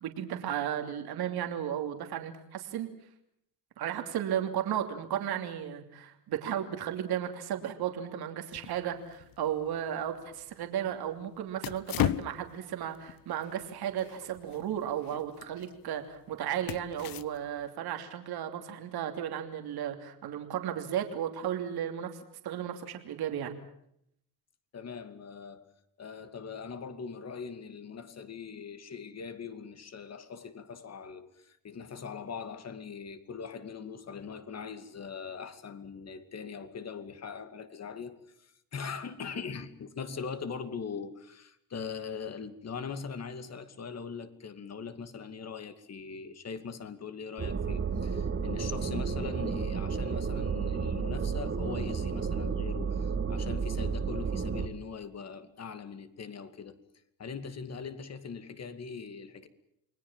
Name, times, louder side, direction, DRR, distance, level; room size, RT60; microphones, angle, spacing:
voice 1, 0.0-2.9 3.8-22.1 22.4-23.6, right 10 dB, 75° right, 3.0 m, -34 dB
sound 1, 8.5-17.7, left 12 dB, 65° left, 1.0 m, -39 dB
voice 2, 24.7-25.7 26.0-56.8 57.2-59.5, left 6 dB, 40° left, 2.5 m, -41 dB
sound 2, 47.4-54.7, right 5 dB, 30° right, 2.2 m, -32 dB
29.0 x 21.0 x 7.4 m
cardioid pair, 115°, 38 cm